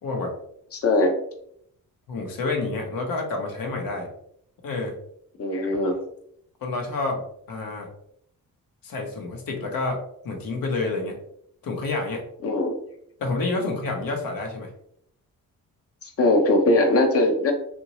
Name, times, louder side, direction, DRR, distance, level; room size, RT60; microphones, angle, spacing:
voice 1, 0.0-0.3 2.1-4.1 4.6-5.0 5.8-6.0 6.6-7.9 8.8-11.2 11.6-12.2 13.2-14.7, left 3 dB, 70° left, 2 dB, 1.0 m, -29 dB
voice 2, 0.7-1.1 5.4-6.0 12.4-12.7 16.0-17.5, left 2 dB, 40° left, 3 dB, 0.7 m, -20 dB
2.8 x 2.6 x 3.0 m, 0.69 s
cardioid pair, 70°, 35 cm